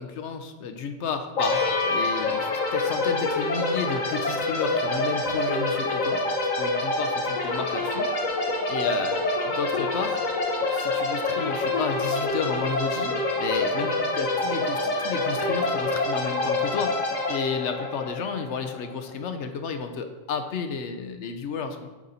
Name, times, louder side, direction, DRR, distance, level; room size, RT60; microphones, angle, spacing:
voice 1, 0.0-1.6 1.9-8.1 8.7-10.2 10.7-21.9, left 5 dB, 65° left, 7 dB, 0.9 m, -32 dB
sound 1, 1.4-19.0, left 2 dB, 80° left, 1.4 m, -26 dB
7.7 x 4.1 x 4.0 m, 1.2 s
omnidirectional pair, 1.4 m